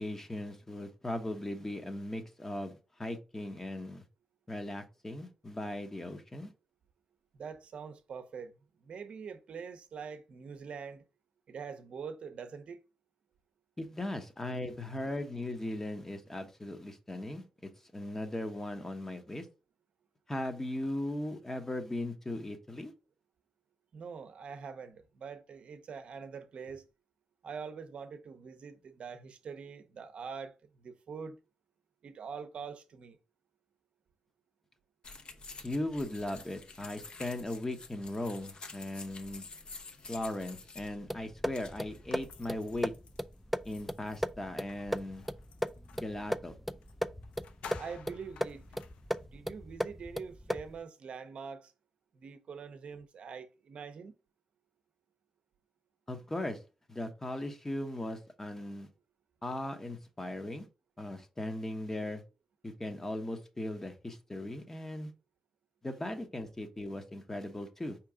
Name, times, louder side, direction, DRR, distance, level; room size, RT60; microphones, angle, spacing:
voice 1, 0.0-4.0 4.5-6.5 13.8-17.4 17.9-19.5 20.3-22.9 35.6-39.5 40.1-42.9 43.6-45.2 45.9-46.5 56.1-56.6 56.9-58.9 59.4-60.7 61.0-62.2 62.6-65.1 65.8-68.0, left 1 dB, 20° left, 0.9 m, -38 dB
voice 2, 7.3-8.5 8.8-11.0 11.5-12.8 23.9-26.9 27.4-31.4 32.0-33.2 47.7-48.8 49.2-51.7 52.1-54.1, right 6 dB, 65° right, 0.6 m, -44 dB
sound 1, 35.0-42.6, left 3 dB, 50° left, 0.9 m, -50 dB
sound 2, 41.1-50.8, equal, ahead, 0.3 m, -37 dB
sound 3, 42.1-46.1 46.8-46.9 47.2-49.3, left 7 dB, 90° left, 0.4 m, -53 dB
4.6 x 2.9 x 3.6 m
cardioid pair, 70°, 2 cm